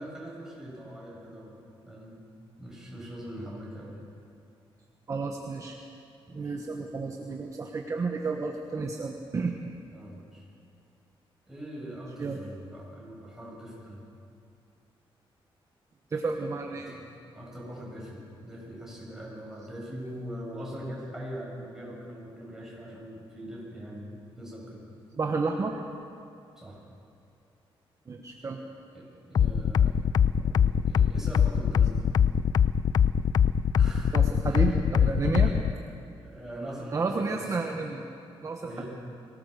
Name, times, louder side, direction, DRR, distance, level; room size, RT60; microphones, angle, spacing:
voice 1, 0.0-2.2 2.6-4.1 6.3-6.5 9.9-10.4 11.5-14.0 16.9-17.0 17.3-24.8 26.6-26.8 28.9-29.9 30.4-32.0 33.8-34.2 34.5-35.6 35.9-37.8 38.6-38.9, equal, 5° right, -5 dB, 7.5 m, -42 dB
voice 2, 5.1-5.8 6.3-9.5 12.2-12.4 16.1-16.9 25.2-25.8 28.1-28.6 34.1-35.5 36.9-38.0 38.4-38.8, right 4 dB, 35° right, 2 dB, 1.2 m, -31 dB
sound 1, 29.3-35.7, left 8 dB, 45° left, 0.4 m, -22 dB
23.0 x 18.0 x 6.8 m, 2.5 s
cardioid pair, 130°, 10 cm